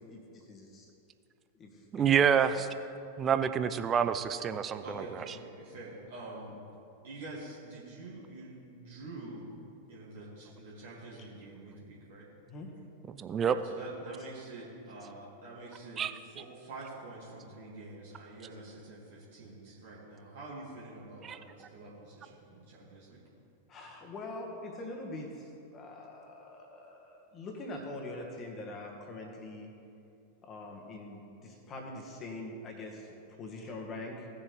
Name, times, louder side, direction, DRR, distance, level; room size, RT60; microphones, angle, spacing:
voice 1, 0.1-0.9 1.6-2.1 11.2-11.3 12.5-12.7 23.7-29.7 30.4-33.1 33.4-34.3, left 2 dB, 25° left, 1 dB, 1.8 m, -43 dB
voice 2, 1.9-2.7 3.2-5.0 13.2-13.6 16.0-16.1 21.2-21.4, right 8 dB, 25° right, 11 dB, 0.5 m, -27 dB
voice 3, 4.8-6.6 7.0-9.4 9.9-12.3 13.4-21.4 21.7-23.2, right 2 dB, 55° right, -7 dB, 2.4 m, -46 dB
18.0 x 6.9 x 3.5 m, 2.7 s
figure-of-eight pair, 90°, 0 cm